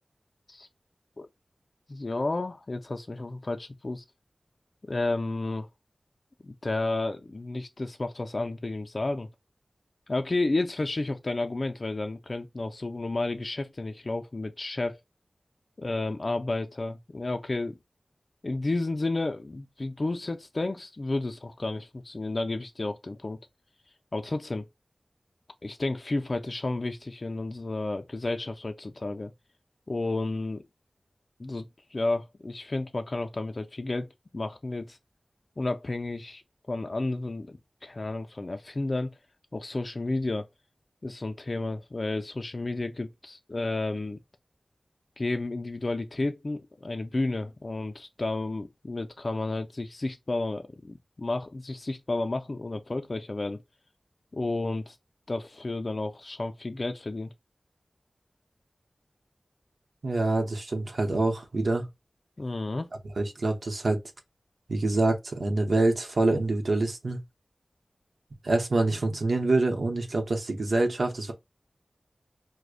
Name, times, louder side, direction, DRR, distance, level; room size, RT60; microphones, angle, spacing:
voice 1, 1.9-4.0 4.8-5.7 6.4-9.3 10.1-15.0 15.8-17.8 18.4-23.4 24.1-24.7 25.6-29.3 29.9-30.6 31.4-31.7 31.9-35.0 35.6-36.4 36.7-39.1 39.5-40.5 41.0-44.2 45.2-53.6 54.3-55.0 55.3-57.3 62.4-62.9, left 2 dB, 50° left, 0.3 m, -31 dB
voice 2, 60.0-61.9 63.2-64.0 64.7-67.2 68.4-71.3, right 2 dB, 85° right, 0.7 m, -26 dB
4.8 x 2.1 x 2.4 m
wide cardioid pair, 60°, 0 cm